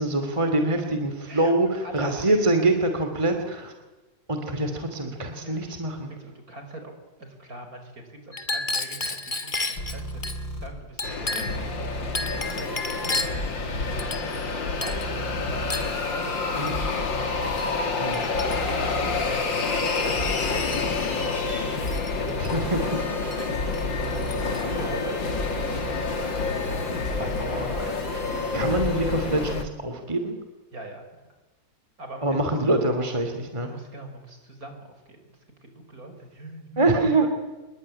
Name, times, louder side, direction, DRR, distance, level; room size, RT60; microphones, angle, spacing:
voice 1, 0.0-3.7 4.3-6.1 16.6-16.7 18.0-18.2 22.4-22.8 24.4-24.8 27.2-27.9 28.5-30.4 32.2-33.7 36.8-37.3, right 2 dB, 15° right, 6 dB, 2.7 m, -25 dB
voice 2, 1.3-2.5 4.9-5.1 5.4-5.8 6.2-10.3 10.6-11.5 12.2-13.1 13.7-13.8 14.1-15.7 16.0-16.8 18.2-26.8 27.1-27.3 28.1-28.8 30.7-31.1 32.0-32.6 33.6-37.3, right 2 dB, 50° right, 6 dB, 5.6 m, -42 dB
Chink clink, 8.3-10.4 11.0-11.7 12.1-13.5 14.0-14.5 14.8-15.1 15.7-16.0 16.7-16.8 17.6-17.7 18.1-18.8 19.6-20.2 20.5-20.8 21.9-22.5 23.3-23.4 23.7-24.6, left 2 dB, 25° left, 2.2 m, -32 dB
sound 1, 9.8-10.7 11.5-14.0 14.9-17.5 18.3-29.5, left 1 dB, 60° left, 5.6 m, -35 dB
sound 2, 11.0-29.6, left 4 dB, 85° left, 3.3 m, -28 dB
26.5 x 22.0 x 9.9 m, 1.2 s
omnidirectional pair, 2.0 m